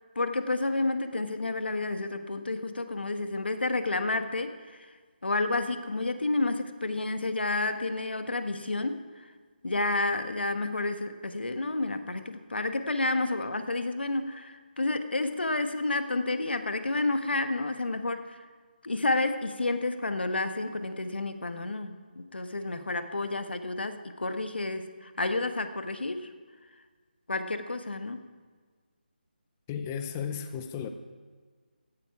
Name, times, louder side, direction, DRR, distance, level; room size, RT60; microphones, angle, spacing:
voice 1, 0.1-4.8 5.2-9.0 9.6-18.4 18.8-26.3 27.3-28.2, left 2 dB, 90° left, 8 dB, 1.3 m, -30 dB
voice 2, 29.7-30.9, left 7 dB, 10° left, 8 dB, 0.5 m, -34 dB
16.0 x 12.5 x 4.7 m, 1.5 s
figure-of-eight pair, 170°, 5 cm